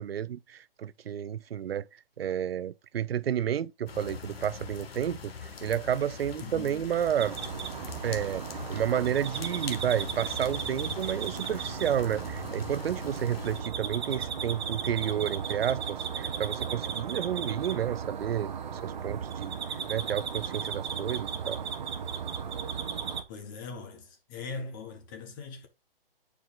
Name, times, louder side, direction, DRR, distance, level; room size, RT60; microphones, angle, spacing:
voice 1, 0.0-1.9 2.2-5.3 5.6-7.4 8.0-8.4 8.7-19.6 19.9-21.6, right 9 dB, 90° right, 0.5 m, -31 dB
sound 1, 3.9-13.6, left 5 dB, 90° left, 1.4 m, -42 dB
voice 2, 6.4-6.9 23.3-25.7, left 4 dB, 20° left, 0.9 m, -41 dB
sound 2, 7.2-23.2, right 7 dB, 50° right, 0.9 m, -36 dB
9.4 x 4.7 x 2.4 m
hypercardioid pair, 160°, 29 cm